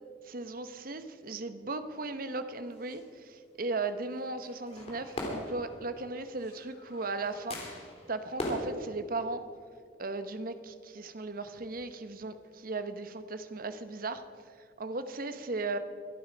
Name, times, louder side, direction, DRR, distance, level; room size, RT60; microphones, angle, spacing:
voice 1, 0.2-7.8 8.1-9.5 10.0-14.2 14.8-15.8, right 3 dB, 50° right, 10 dB, 0.9 m, -37 dB
sound 1, 2.5-3.1 4.1-8.6, left 1 dB, 35° left, 3.0 m, -41 dB
23.5 x 8.7 x 5.1 m, 2.1 s
head